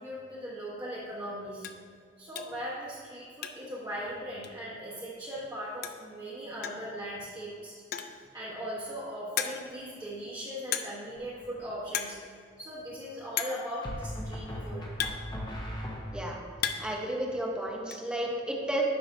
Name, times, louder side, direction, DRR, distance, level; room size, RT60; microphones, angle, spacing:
voice 1, 0.0-1.7 2.2-7.8 8.3-12.2 12.6-14.9, equal, 20° right, -9 dB, 1.1 m, -39 dB
sound 1, 0.7-0.8 1.2-1.3 1.6-1.9 2.3-2.6 3.0-3.8 4.1-4.2 4.4-4.5 5.5-5.6 5.8-6.1 6.6-6.9 7.7-8.2 8.8-8.9 9.4-9.8 10.7-11.1 11.4-11.6 11.9-12.2 12.5-12.6 13.4-13.7 14.5-15.8 16.2-17.0 17.3-18.0, left 8 dB, 55° left, 0.4 m, -35 dB
sound 2, 11.2-11.6 13.8-16.5, equal, 25° left, 0.9 m, -38 dB
voice 2, 16.8-18.8, right 1 dB, 5° right, -1 dB, 0.8 m, -32 dB
9.7 x 5.8 x 2.6 m, 2.1 s
head